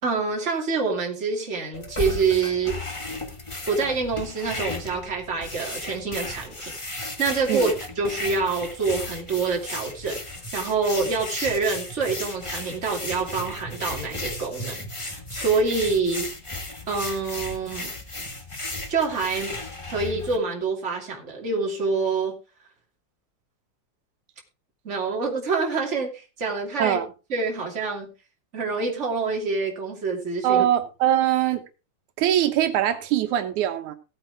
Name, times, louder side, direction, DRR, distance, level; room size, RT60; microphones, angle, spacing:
voice 1, 0.0-2.8 3.7-16.3 16.9-17.9 18.9-19.6 19.9-22.4 24.8-27.0 27.3-28.1 28.5-30.6, right 4 dB, 25° right, 2.7 m, -26 dB
sound 1, 1.7-20.4, left 2 dB, 20° left, 0.7 m, -35 dB
voice 2, 30.4-31.6 32.2-34.0, right 11 dB, 85° right, 2.5 m, -22 dB
16.0 x 8.8 x 3.5 m
omnidirectional pair, 3.3 m